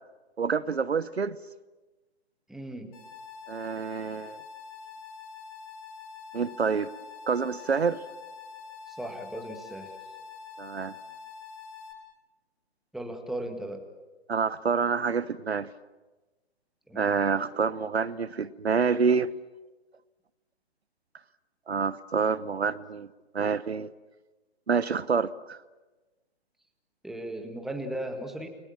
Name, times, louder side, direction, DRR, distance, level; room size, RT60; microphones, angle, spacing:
voice 1, 0.4-1.4 3.5-4.4 6.3-6.9 7.3-8.0 10.6-10.9 14.3-15.7 16.9-19.3 21.7-23.1 23.3-23.9 24.7-25.6, right 5 dB, 75° right, 1.0 m, -27 dB
voice 2, 2.5-2.9 8.9-9.9 12.9-13.8 16.9-17.1 27.0-28.5, right 1 dB, ahead, 1.8 m, -36 dB
sound 1, 2.9-11.9, left 6 dB, 35° left, 7.8 m, -45 dB
29.5 x 22.5 x 7.4 m
figure-of-eight pair, 130°, 32 cm